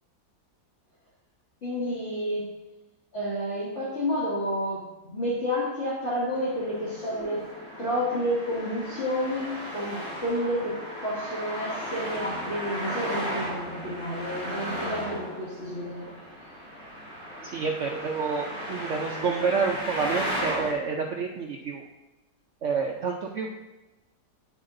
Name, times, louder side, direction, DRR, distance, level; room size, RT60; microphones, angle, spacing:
voice 1, 1.6-2.4 3.1-7.4 7.8-16.1, equal, 40° left, -9 dB, 2.3 m, -30 dB
Traffic noise roadway noise, 6.3-20.7, equal, 75° left, 2.6 m, -35 dB
voice 2, 17.4-21.8 22.6-23.5, right 5 dB, 75° right, 1 dB, 0.7 m, -28 dB
9.3 x 7.9 x 2.6 m, 1.1 s
omnidirectional pair, 1.9 m